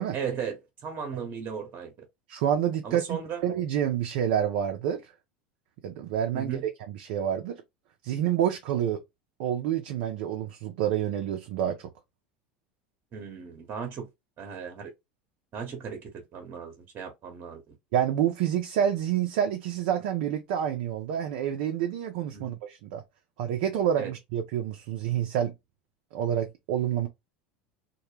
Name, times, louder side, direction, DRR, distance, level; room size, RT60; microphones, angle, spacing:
voice 1, 0.1-2.1 2.8-3.4 6.3-6.6 13.1-14.1 14.4-14.9 15.5-17.8 22.3-22.6 24.0-24.1, right 6 dB, 40° right, 0.8 m, -36 dB
voice 2, 2.3-5.0 5.8-6.6 6.9-7.6 8.0-9.0 9.4-11.9 17.9-23.0 23.4-25.5 26.1-27.1, right 10 dB, 65° right, 0.4 m, -28 dB
2.1 x 2.1 x 3.1 m
hypercardioid pair, 85°, 5 cm